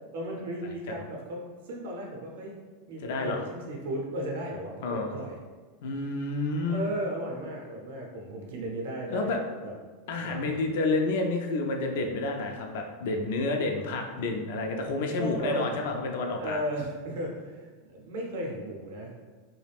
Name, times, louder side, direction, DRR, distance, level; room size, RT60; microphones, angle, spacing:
voice 1, 0.1-2.6 2.9-5.4 6.7-9.3 9.6-9.7 10.2-10.6 15.2-15.7 16.4-19.2, right 1 dB, 75° right, -1 dB, 0.6 m, -35 dB
voice 2, 3.0-3.5 4.8-5.1 5.8-6.8 9.1-9.4 10.1-16.6, left 2 dB, 70° left, 3 dB, 0.3 m, -29 dB
2.4 x 2.0 x 3.3 m, 1.4 s
hypercardioid pair, 115°, 0 cm